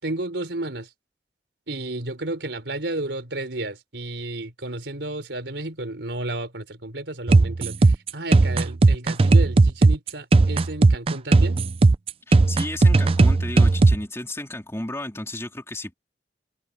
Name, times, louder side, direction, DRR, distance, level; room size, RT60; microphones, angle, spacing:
voice 1, 0.0-0.9 1.7-11.7, right 2 dB, 80° right, 3.9 m, -32 dB
sound 1, 7.3-14.0, right 3 dB, 30° right, 0.4 m, -16 dB
voice 2, 12.3-15.9, left 1 dB, 15° left, 3.5 m, -33 dB
head